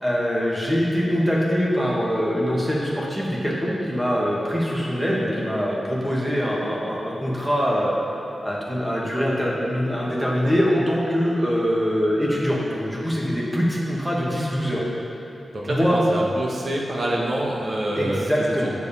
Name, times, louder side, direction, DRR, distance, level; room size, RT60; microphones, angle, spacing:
voice 1, 0.0-8.0 8.4-14.8 15.7-16.0 18.0-18.7, equal, 5° right, -4 dB, 1.5 m, -23 dB
voice 2, 15.5-18.7, right 1 dB, 50° right, -3 dB, 1.2 m, -26 dB
8.0 x 7.1 x 4.1 m, 2.8 s
wide cardioid pair, 130°, 0 cm